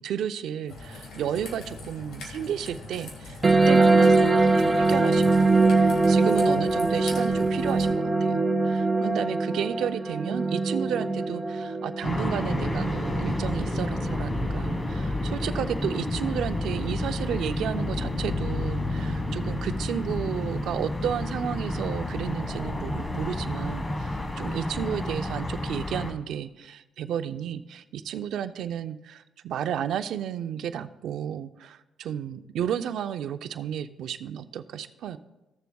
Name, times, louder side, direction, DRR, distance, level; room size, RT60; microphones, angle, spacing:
voice 1, 0.0-24.1 24.4-35.2, right 9 dB, 75° right, 11 dB, 0.5 m, -32 dB
Raindrop / Trickle dribble, 0.7-7.9, left 2 dB, 80° left, 1.8 m, -41 dB
sound 1, 3.4-14.4, right 3 dB, 25° right, 0.8 m, -23 dB
sound 2, 12.0-26.1, left 1 dB, 25° left, 1.3 m, -30 dB
15.5 x 6.8 x 2.3 m, 1.0 s
cardioid pair, 90°, 0 cm